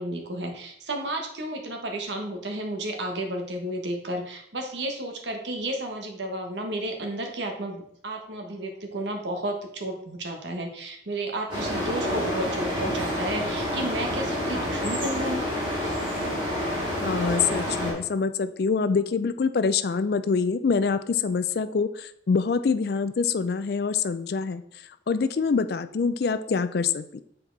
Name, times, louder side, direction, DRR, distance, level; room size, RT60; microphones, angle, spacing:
voice 1, 0.0-15.4, right 1 dB, 75° right, 3 dB, 1.2 m, -32 dB
sound 1, 11.5-17.9, equal, 25° right, 2.1 m, -28 dB
voice 2, 17.0-24.6 25.1-27.2, left 5 dB, 55° left, 12 dB, 0.4 m, -25 dB
7.2 x 4.3 x 3.9 m, 0.69 s
head